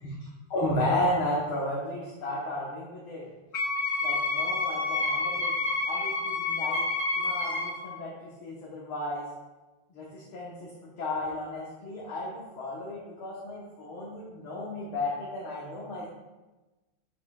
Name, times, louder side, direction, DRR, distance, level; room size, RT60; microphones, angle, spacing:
voice 1, 0.5-3.2 4.0-5.6 5.9-6.8 7.1-9.3 9.9-16.1, left 1 dB, 75° left, -5 dB, 2.0 m, -33 dB
Wind instrument woodwind instrument, 3.5-7.8, left 3 dB, 30° left, 1.7 m, -29 dB
11.5 x 5.0 x 2.3 m, 1.2 s
omnidirectional pair, 2.3 m